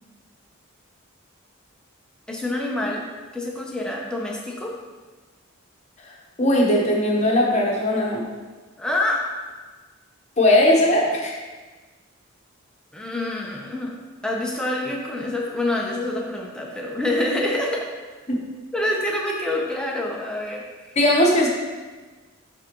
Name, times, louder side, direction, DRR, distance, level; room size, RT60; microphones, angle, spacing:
voice 1, 2.3-3.1 3.3-4.8 8.8-9.2 12.9-14.0 14.2-17.9 18.7-21.0, left 1 dB, 5° left, -2 dB, 0.6 m, -26 dB
voice 2, 6.4-8.3 10.4-11.3 21.0-21.5, left 1 dB, 30° left, -2 dB, 0.9 m, -18 dB
10.5 x 3.5 x 3.0 m, 1.3 s
head